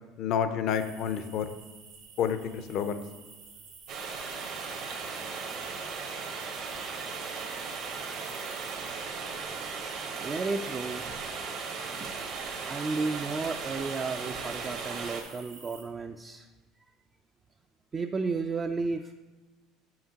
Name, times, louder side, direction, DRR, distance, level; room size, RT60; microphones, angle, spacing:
voice 1, 0.2-1.5 2.2-3.0, left 8 dB, 60° left, 10 dB, 0.5 m, -29 dB
sound 1, 0.7-15.8, right 5 dB, 90° right, 1.8 m, -52 dB
sound 2, 3.9-15.2, right 5 dB, 65° right, 1.2 m, -37 dB
voice 2, 10.2-11.0 12.0-12.1 12.7-16.5 17.9-19.1, right 4 dB, 30° right, 5 dB, 0.3 m, -33 dB
7.0 x 5.7 x 2.8 m, 1.3 s
supercardioid pair, 95°, 0 cm